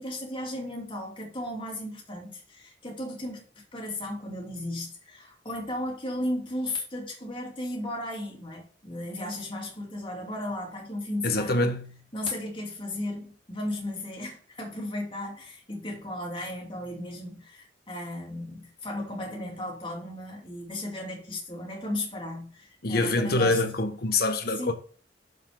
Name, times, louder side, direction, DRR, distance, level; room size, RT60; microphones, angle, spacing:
voice 1, 0.0-11.7 12.1-23.6 24.6-24.7, left 1 dB, 30° left, 2.9 m, -35 dB
voice 2, 11.2-12.0 22.8-24.7, left 2 dB, 60° left, 1.3 m, -25 dB
7.1 x 6.0 x 5.1 m
head